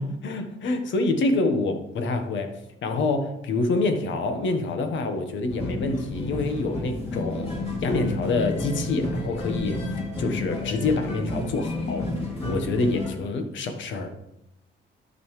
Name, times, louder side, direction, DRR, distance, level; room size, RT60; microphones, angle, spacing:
voice 1, 0.0-2.5 2.8-7.5 7.8-9.8 10.2-12.1 12.4-14.1, left 3 dB, 70° left, 6 dB, 1.3 m, -26 dB
sound 1, 5.5-13.1, left 2 dB, 30° left, 2.7 m, -31 dB
11.5 x 5.5 x 3.2 m, 0.81 s
cardioid pair, 90°, 20 cm